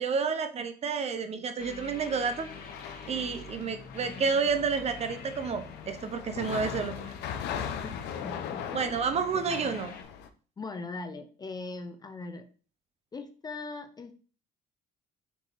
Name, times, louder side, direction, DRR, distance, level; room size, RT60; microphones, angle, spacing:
voice 1, 0.0-2.5 3.1-7.1 8.7-9.9, right 5 dB, 40° right, 9 dB, 0.6 m, -30 dB
sound 1, 1.6-10.0, left 5 dB, 60° left, 0.9 m, -46 dB
sound 2, 2.5-10.3, left 8 dB, 85° left, 0.5 m, -40 dB
voice 2, 7.8-9.6 10.6-12.5 13.1-14.1, left 3 dB, 25° left, 7 dB, 0.5 m, -40 dB
4.7 x 2.8 x 3.9 m, 0.40 s
cardioid pair, 110°, 17 cm